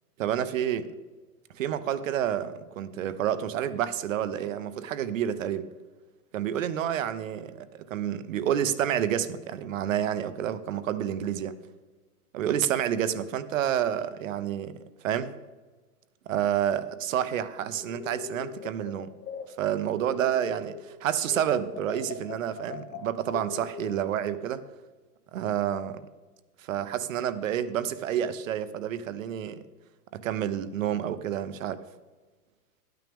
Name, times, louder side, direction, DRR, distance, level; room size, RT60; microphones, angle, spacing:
voice 1, 0.2-0.9 1.5-5.7 6.3-11.6 12.3-14.7 15.0-15.4 16.3-19.1 19.6-24.6 25.3-26.0 26.6-29.6 30.1-31.8, right 10 dB, 55° right, 13 dB, 0.8 m, -29 dB
sound 1, 17.7-21.0 21.3-24.3, left 7 dB, 70° left, 1.8 m, -42 dB
12.5 x 9.3 x 3.5 m, 1.3 s
hypercardioid pair, 155°, 48 cm